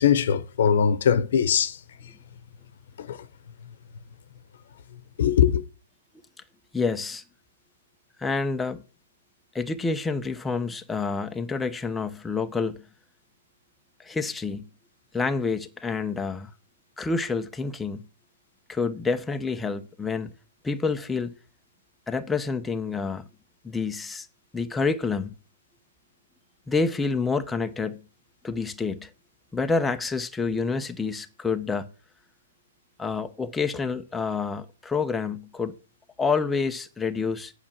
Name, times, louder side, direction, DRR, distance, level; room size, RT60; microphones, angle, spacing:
voice 1, 0.0-1.7 3.1-3.2 5.2-5.6, left 8 dB, 65° left, 1.0 m, -21 dB
voice 2, 6.7-7.2 8.2-8.8 9.5-12.8 14.0-14.7 15.1-16.5 17.0-18.1 18.7-20.3 20.6-21.3 22.1-23.3 23.6-24.3 24.5-25.3 26.7-28.0 28.4-29.1 29.5-31.9 33.0-35.7 36.2-37.5, left 4 dB, 10° left, 0.8 m, -28 dB
8.6 x 5.8 x 7.4 m
hypercardioid pair, 130°, 0 cm